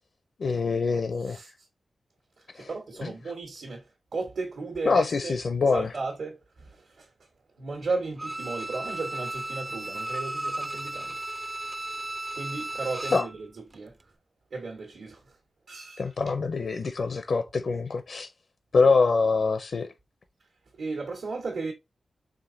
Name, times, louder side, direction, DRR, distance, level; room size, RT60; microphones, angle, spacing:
voice 1, 0.4-1.4 2.6-2.7 3.0-3.1 4.9-5.9 13.1-13.3 16.0-18.3 18.7-19.9, left 4 dB, 60° left, 0.5 m, -24 dB
voice 2, 2.5-3.8 4.1-5.4 5.7-7.1 7.6-11.2 12.3-14.0 14.5-15.3 15.7-16.1 20.7-21.7, right 3 dB, 75° right, 1.5 m, -35 dB
Bowed string instrument, 8.2-13.4 13.7-13.8, right 1 dB, 20° right, 0.4 m, -34 dB
5.0 x 3.5 x 2.6 m
wide cardioid pair, 125°, 0 cm